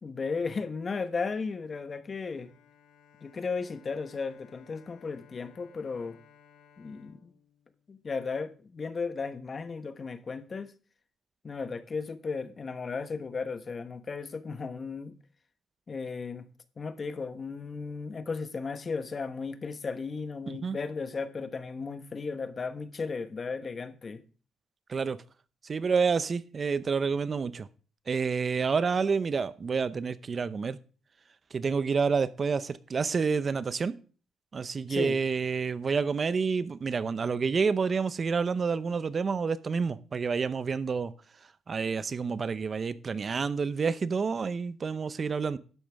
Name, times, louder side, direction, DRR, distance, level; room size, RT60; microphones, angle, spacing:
voice 1, 0.0-2.5 3.2-6.2 6.8-7.3 7.9-10.7 11.4-15.1 15.9-16.5 16.8-24.2 34.9-35.2, left 4 dB, 40° left, 1.1 m, -35 dB
Bowed string instrument, 2.4-8.4, left 7 dB, 90° left, 2.0 m, -60 dB
voice 2, 20.5-20.8 24.9-25.2 25.7-27.7 28.1-30.8 31.5-34.0 34.5-41.1 41.7-45.6, right 5 dB, 40° right, 0.7 m, -29 dB
12.0 x 8.7 x 3.5 m
cardioid pair, 90°, 0 cm